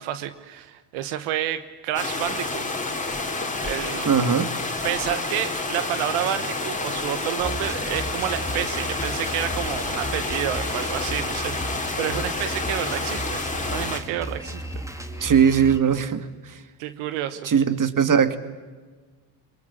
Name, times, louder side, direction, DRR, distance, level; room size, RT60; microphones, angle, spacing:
voice 1, 0.0-2.6 3.6-4.1 4.8-14.6 16.8-17.5, right 12 dB, 85° right, 12 dB, 1.3 m, -29 dB
sound 1, 2.0-14.0, left 3 dB, 15° left, 3.6 m, -29 dB
voice 2, 4.1-4.5 15.2-16.6 17.4-18.4, right 7 dB, 40° right, 12 dB, 2.1 m, -20 dB
Drum kit, 7.4-15.8, equal, 5° right, 2.7 m, -35 dB
22.5 x 22.0 x 10.0 m, 1.4 s
supercardioid pair, 70°, 48 cm